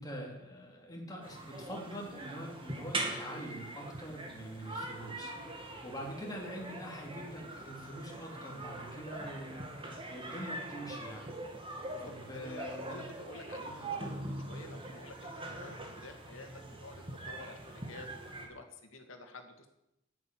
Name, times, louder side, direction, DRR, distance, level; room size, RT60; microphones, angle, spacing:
voice 1, 0.0-11.4 12.0-13.0 13.6-13.8, equal, 20° left, -1 dB, 3.5 m, -44 dB
sound 1, 1.2-18.5, right 2 dB, 25° right, 2.4 m, -42 dB
voice 2, 11.9-18.1 18.5-19.7, left 2 dB, 70° left, 5 dB, 2.4 m, -50 dB
11.0 x 9.9 x 9.4 m, 0.87 s
head